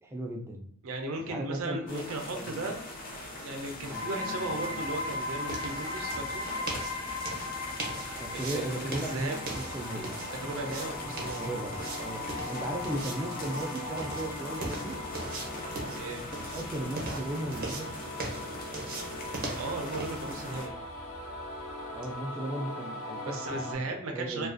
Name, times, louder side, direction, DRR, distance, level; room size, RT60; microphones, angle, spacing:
voice 1, 0.0-0.7 1.2-2.0 2.3-2.5 8.2-10.1 11.3-12.2 12.5-15.0 16.5-17.9 21.9-23.4 24.1-24.5, right 1 dB, 15° right, 2 dB, 0.3 m, -36 dB
voice 2, 0.8-2.8 3.2-6.4 8.3-9.8 10.4-11.4 16.0-16.2 19.5-20.8 23.2-24.5, right 2 dB, 85° right, 3 dB, 0.5 m, -36 dB
sound 1, 1.9-20.7, left 1 dB, 45° left, 0.5 m, -42 dB
sound 2, 3.9-23.7, left 2 dB, 90° left, 0.6 m, -39 dB
sound 3, 4.5-22.2, right 2 dB, 45° right, 0.6 m, -41 dB
2.4 x 2.3 x 2.4 m, 0.64 s
head